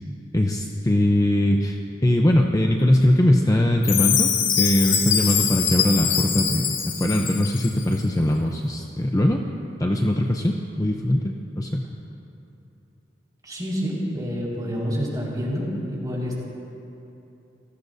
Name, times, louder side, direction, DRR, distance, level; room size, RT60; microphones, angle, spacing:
voice 1, 0.3-1.8 2.0-4.3 4.6-9.4 9.8-11.8, left 1 dB, 20° left, 1 dB, 0.6 m, -21 dB
Chime, 3.8-7.8, left 8 dB, 80° left, 1.6 m, -23 dB
voice 2, 13.4-16.4, equal, 20° right, -5 dB, 4.6 m, -28 dB
27.5 x 18.0 x 2.7 m, 2.9 s
head